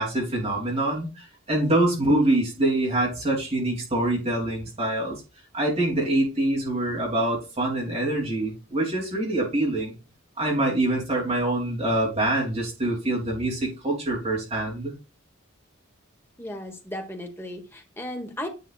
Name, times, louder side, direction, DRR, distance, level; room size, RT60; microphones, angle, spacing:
voice 1, 0.0-5.2 5.5-9.9 10.4-14.9, right 1 dB, 30° right, -4 dB, 3.2 m, -25 dB
voice 2, 16.4-18.5, left 1 dB, 10° left, 3 dB, 1.4 m, -35 dB
9.5 x 5.6 x 2.5 m, 0.29 s
head